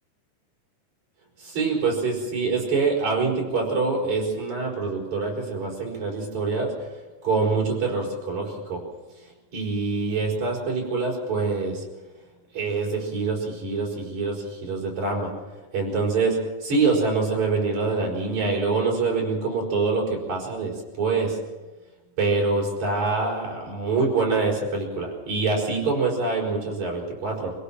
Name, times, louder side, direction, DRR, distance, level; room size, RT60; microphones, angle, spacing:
voice 1, 1.4-6.7 7.2-8.8 9.5-11.8 12.5-15.3 15.7-21.4 22.2-27.5, right 4 dB, 55° right, -1 dB, 6.5 m, -25 dB
26.0 x 17.0 x 5.9 m, 1.2 s
omnidirectional pair, 3.9 m